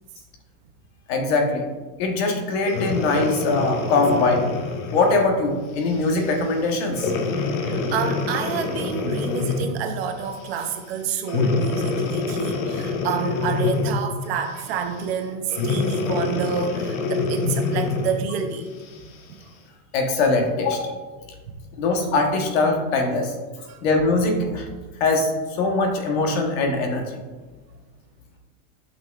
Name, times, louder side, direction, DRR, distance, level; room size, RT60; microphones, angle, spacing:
voice 1, 1.1-1.6 2.0-4.4 4.9-7.1 19.9-21.0 21.8-23.3 23.8-24.7 25.0-25.3 25.6-27.2, left 3 dB, 45° left, 3 dB, 1.1 m, -22 dB
Breathing, 2.6-5.3 5.9-6.1 6.9-9.8 11.3-14.1 15.5-18.2 18.9-19.0, left 4 dB, 70° left, 1.1 m, -25 dB
voice 2, 7.6-18.7 19.3-19.4 20.7-20.8 21.4-21.6 23.7-23.8, right 7 dB, 45° right, 6 dB, 0.6 m, -29 dB
9.3 x 5.7 x 2.4 m, 1.3 s
supercardioid pair, 170°, 44 cm